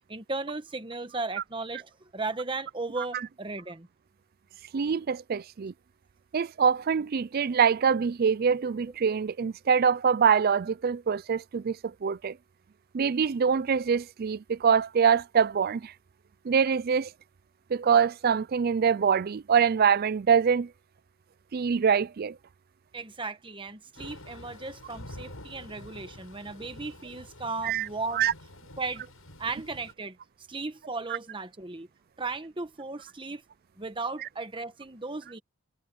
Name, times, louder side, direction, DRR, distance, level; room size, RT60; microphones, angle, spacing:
voice 1, 0.1-3.9 22.9-28.3 28.8-29.0 29.4-30.2 30.5-31.9 32.2-33.4 33.8-35.4, right 3 dB, 25° right, 1.2 m, -36 dB
voice 2, 4.7-5.7 6.3-12.4 12.9-15.9 16.4-17.1 17.7-20.7 21.5-22.4 27.6-27.9 28.1-28.3, right 6 dB, 45° right, 0.4 m, -24 dB
Thunder / Rain, 23.9-29.9, left 1 dB, 75° left, 7.7 m, -47 dB
head